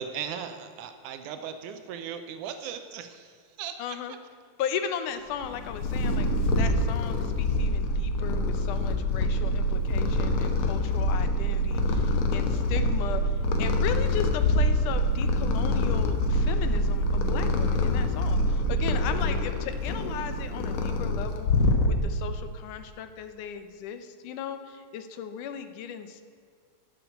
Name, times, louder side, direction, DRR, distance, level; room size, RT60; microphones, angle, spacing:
voice 1, 0.0-3.3 3.6-4.0, right 8 dB, 80° right, 8 dB, 2.2 m, -37 dB
voice 2, 3.8-4.2 4.6-21.5 21.9-26.2, left 8 dB, 85° left, 9 dB, 2.4 m, -36 dB
Purr, 5.4-22.3, left 1 dB, 60° left, 1.7 m, -25 dB
12.0 x 7.5 x 8.0 m, 2.2 s
omnidirectional pair, 3.5 m